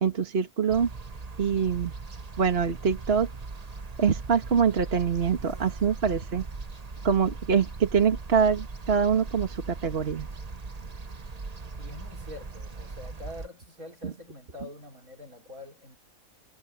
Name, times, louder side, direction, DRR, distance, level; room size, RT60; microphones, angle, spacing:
voice 1, 0.0-0.9 1.4-1.9 2.4-3.3 4.0-6.5 7.0-10.3 14.0-14.1, right 6 dB, 45° right, 1.8 m, -24 dB
sound 1, 0.7-13.5, right 3 dB, 30° right, 1.1 m, -39 dB
voice 2, 11.8-16.0, left 2 dB, 80° right, 4.9 m, -45 dB
omnidirectional pair, 1.5 m